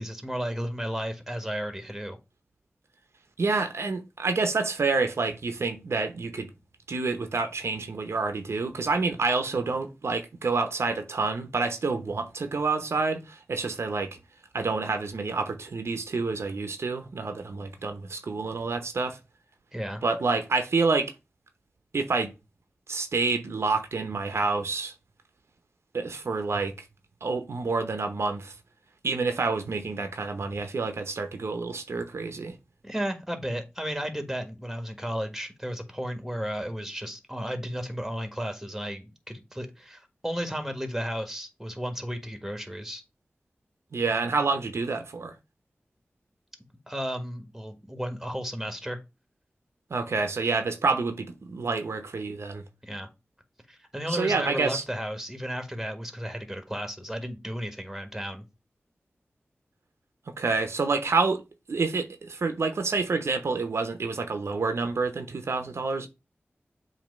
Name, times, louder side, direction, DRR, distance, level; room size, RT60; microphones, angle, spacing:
voice 1, 0.0-2.2 19.7-20.0 32.8-43.0 46.9-49.0 52.8-53.1 53.7-58.4, equal, 5° right, 1.6 m, -34 dB
voice 2, 3.4-6.5 6.9-14.2 14.5-19.2 20.0-21.1 21.9-22.3 22.9-24.9 25.9-26.7 27.2-28.5 29.0-32.6 43.9-45.3 49.9-52.6 54.1-54.8 60.3-61.4 61.7-66.1, right 4 dB, 85° right, 0.8 m, -28 dB
7.4 x 2.9 x 5.3 m
wide cardioid pair, 55°, 4 cm